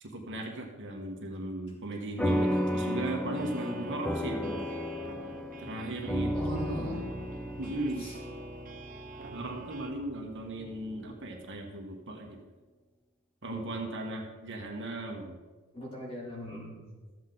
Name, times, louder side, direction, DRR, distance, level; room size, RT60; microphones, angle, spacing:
voice 1, 0.0-4.7 5.6-7.0 7.6-8.1 9.3-12.4 13.4-15.4, right 1 dB, 55° right, 1 dB, 1.4 m, -37 dB
sound 1, 2.2-10.9, equal, 5° left, 0.5 m, -34 dB
sound 2, 2.2-9.9, right 3 dB, 40° right, 0.7 m, -48 dB
voice 2, 6.3-7.0 8.0-8.2 15.7-16.9, left 1 dB, 25° left, -4 dB, 2.9 m, -40 dB
13.5 x 7.8 x 3.9 m, 1.3 s
head